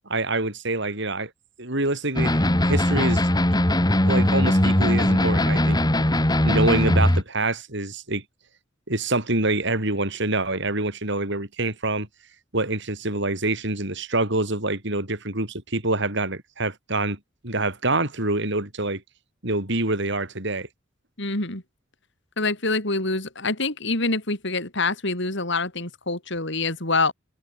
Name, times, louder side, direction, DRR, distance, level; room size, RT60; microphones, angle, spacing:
voice 1, 0.1-1.3 1.6-3.2 4.0-5.8 6.4-8.2 8.9-12.1 12.5-17.2 17.4-19.0 19.4-20.7, right 2 dB, 60° right, 7.0 m, -26 dB
sound 1, 2.2-7.2, left 1 dB, 20° left, 1.8 m, -20 dB
voice 2, 21.2-21.6 22.4-27.1, left 3 dB, 60° left, 5.5 m, -26 dB
head